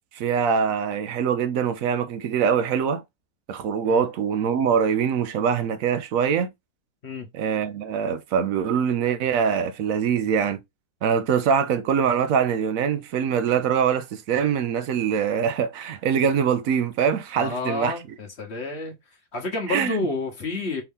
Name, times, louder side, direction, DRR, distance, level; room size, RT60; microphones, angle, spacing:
voice 1, 0.1-3.0 3.5-6.5 7.3-10.6 11.0-18.0 19.7-20.1, right 7 dB, 70° right, 0.9 m, -23 dB
voice 2, 17.4-19.0 19.3-20.8, left 3 dB, 45° left, 1.1 m, -29 dB
4.5 x 2.7 x 3.5 m
omnidirectional pair, 1.7 m